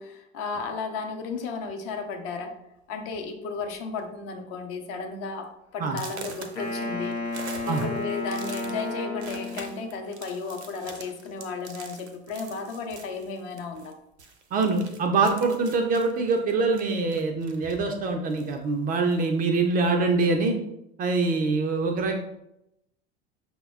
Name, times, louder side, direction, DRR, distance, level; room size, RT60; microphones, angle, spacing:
voice 1, 0.0-2.6 2.9-5.5 5.7-7.2 7.6-14.0, left 4 dB, 45° left, 4 dB, 0.7 m, -34 dB
sound 1, 1.3-1.7 2.5-2.6 3.0-3.2 3.5-4.0 4.4-4.5 5.0-5.1 5.9-13.9 14.2-17.9 18.3-19.3, right 4 dB, 80° right, 0.6 m, -45 dB
Wind instrument woodwind instrument, 6.6-10.0, left 3 dB, 85° left, 0.8 m, -32 dB
voice 2, 14.5-20.6 21.0-22.2, right 3 dB, 25° right, 4 dB, 0.4 m, -24 dB
5.3 x 2.1 x 2.3 m, 0.83 s
figure-of-eight pair, 75°, 33 cm